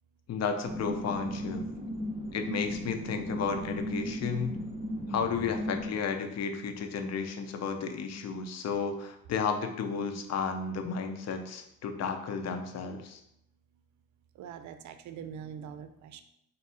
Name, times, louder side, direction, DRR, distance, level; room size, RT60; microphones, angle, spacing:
voice 1, 0.3-1.6 2.3-4.5 5.1-13.2, left 5 dB, 60° left, 6 dB, 0.6 m, -33 dB
sound 1, 0.6-5.9, equal, 20° right, 0.8 m, -36 dB
voice 2, 14.4-16.2, right 8 dB, 70° right, 9 dB, 0.5 m, -43 dB
3.4 x 2.7 x 4.2 m, 0.78 s
cardioid pair, 90°, 30 cm